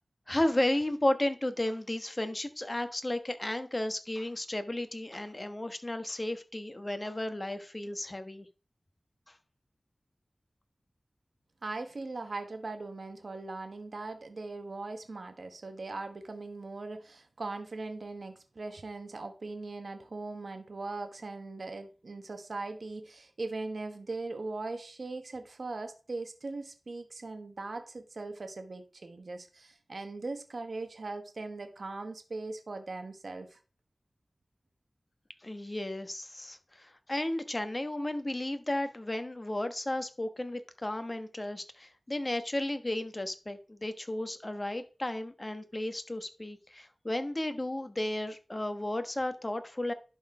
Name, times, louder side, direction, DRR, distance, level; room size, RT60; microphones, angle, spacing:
voice 1, 0.3-8.5 9.3-9.4 35.4-49.9, left 1 dB, 35° left, 1.2 m, -33 dB
voice 2, 11.6-33.6, right 3 dB, 75° right, 1.1 m, -40 dB
11.0 x 4.2 x 4.8 m
wide cardioid pair, 45°, 0 cm